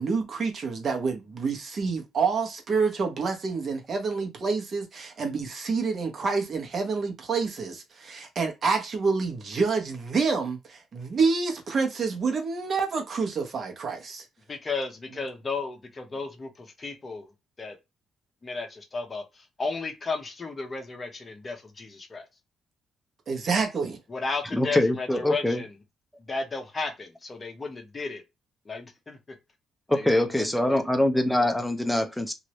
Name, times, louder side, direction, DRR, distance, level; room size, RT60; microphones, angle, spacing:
voice 1, 0.0-14.2 23.3-24.0, right 4 dB, 50° right, 1.0 m, -28 dB
voice 2, 14.5-17.3 17.6-17.8 18.4-22.3 24.1-25.7 26.2-28.2 28.6-29.2 29.9-30.8, left 4 dB, 30° left, 1.0 m, -34 dB
voice 3, 24.5-25.6 29.9-32.3, left 1 dB, ahead, 0.7 m, -24 dB
3.0 x 2.7 x 3.1 m
cardioid pair, 90°, 0 cm